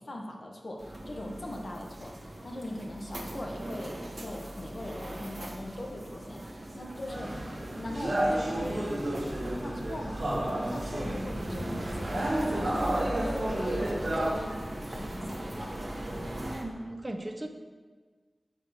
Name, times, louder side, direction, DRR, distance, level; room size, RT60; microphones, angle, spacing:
voice 1, 0.0-7.4 7.7-15.9, left 1 dB, 60° left, 0 dB, 1.1 m, -40 dB
sound 1, 0.8-16.6, right 1 dB, 50° right, 1.2 m, -40 dB
sound 2, 7.1-14.3, right 1 dB, 70° right, 1.5 m, -31 dB
voice 2, 16.6-17.5, right 1 dB, 35° right, 4 dB, 0.7 m, -37 dB
5.1 x 5.0 x 6.2 m, 1.4 s
cardioid pair, 45°, 0 cm